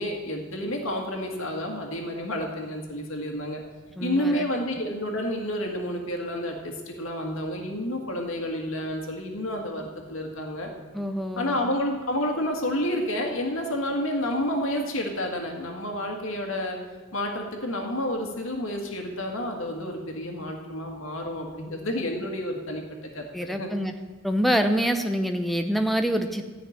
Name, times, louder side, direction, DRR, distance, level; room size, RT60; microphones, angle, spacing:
voice 1, 0.0-3.6 4.0-10.7 11.4-16.8 17.1-22.8 23.1-23.7, left 1 dB, 80° left, 2 dB, 1.9 m, -30 dB
voice 2, 4.0-4.4 10.9-11.6 23.3-23.9 24.2-26.4, equal, ahead, 5 dB, 0.7 m, -26 dB
14.0 x 5.9 x 9.3 m, 1.4 s
head